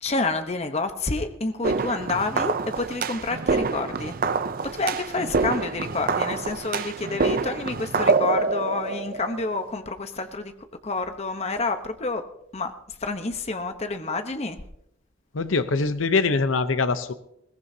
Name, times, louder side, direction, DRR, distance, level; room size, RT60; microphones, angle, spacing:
voice 1, 0.0-4.1 4.6-10.5 10.8-12.2 12.5-12.7 13.0-14.6, left 3 dB, 30° left, 8 dB, 0.9 m, -28 dB
sound 1, 1.6-9.8, right 4 dB, 45° right, 0.5 m, -26 dB
voice 2, 15.3-17.1, left 4 dB, 80° left, 11 dB, 0.8 m, -23 dB
21.0 x 18.0 x 2.8 m, 0.76 s
head